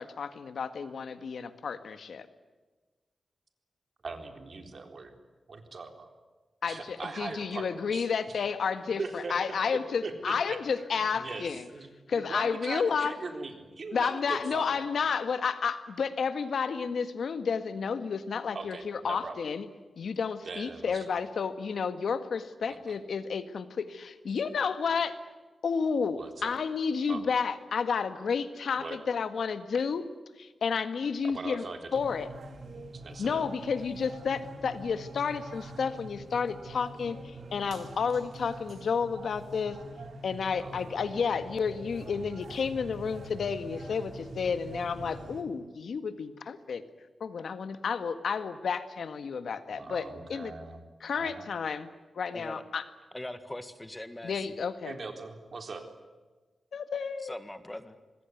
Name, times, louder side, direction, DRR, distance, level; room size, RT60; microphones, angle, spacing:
voice 1, 0.0-2.3 6.6-11.7 12.1-13.2 13.9-19.7 20.0-25.2 25.6-30.1 30.4-31.6 31.9-32.3 33.2-39.8 40.2-46.8 47.2-50.5 51.0-51.9 52.2-52.8 54.2-55.0 56.7-57.3, left 6 dB, 80° left, 11 dB, 1.8 m, -31 dB
voice 2, 4.0-5.1 5.5-6.1 6.6-8.4 9.0-10.6 11.1-14.8 18.5-19.4 20.4-21.1 22.7-23.0 26.1-26.6 27.1-27.2 28.7-29.0 31.2-32.0 32.9-33.5 40.6-41.0 49.7-50.8 51.1-51.5 54.8-55.9, right 4 dB, 50° right, 6 dB, 3.9 m, -41 dB
sound 1, 31.9-45.4, right 2 dB, 70° right, 4.5 m, -45 dB
voice 3, 53.1-54.5 57.2-58.0, left 1 dB, 15° left, 11 dB, 1.8 m, -41 dB
26.5 x 21.0 x 9.4 m, 1.3 s
wide cardioid pair, 120°, 0 cm